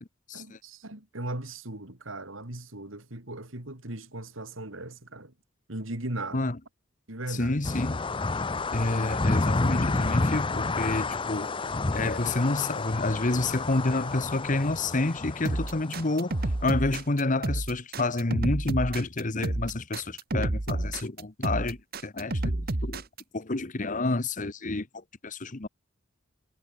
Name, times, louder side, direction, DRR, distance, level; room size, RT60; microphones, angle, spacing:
voice 1, 0.3-5.3 5.7-6.5 7.1-7.8, right 1 dB, 85° right, 3.9 m, -38 dB
voice 2, 7.3-8.0 8.7-11.5 11.9-21.8 22.0-23.0 23.3-25.7, left 2 dB, 40° left, 1.1 m, -29 dB
sound 1, 7.6-16.5, left 3 dB, 25° left, 0.7 m, -30 dB
sound 2, 15.4-23.2, right 2 dB, 50° right, 1.3 m, -30 dB
head